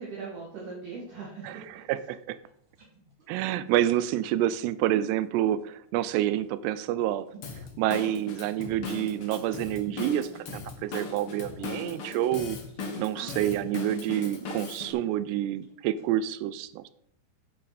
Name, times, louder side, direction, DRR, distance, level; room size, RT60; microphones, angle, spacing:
voice 1, 0.0-1.6 13.1-13.7, right 4 dB, 55° right, -4 dB, 3.1 m, -40 dB
sound 1, 1.4-16.1, right 3 dB, 35° right, 3.1 m, -53 dB
voice 2, 1.4-2.4 3.3-7.3 7.5-12.6 13.0-16.9, right 12 dB, 90° right, 14 dB, 2.7 m, -28 dB
Drum kit / Drum, 7.4-14.9, left 4 dB, 60° left, 1.4 m, -38 dB
9.0 x 8.8 x 4.2 m, 0.69 s
omnidirectional pair, 4.8 m